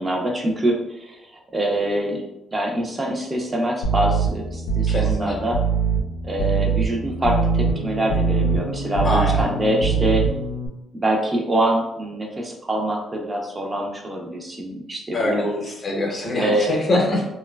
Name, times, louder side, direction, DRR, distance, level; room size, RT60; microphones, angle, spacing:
voice 1, 0.0-2.2 2.5-5.6 6.2-10.2 10.9-15.5 16.4-16.7, right 1 dB, 25° right, 0 dB, 0.5 m, -24 dB
sound 1, 3.8-10.7, right 5 dB, 80° left, 0.4 m, -23 dB
voice 2, 4.9-5.4 9.0-9.5 15.1-17.3, left 1 dB, 40° left, 0 dB, 0.7 m, -23 dB
2.9 x 2.2 x 2.2 m, 0.90 s
cardioid pair, 90°, 0 cm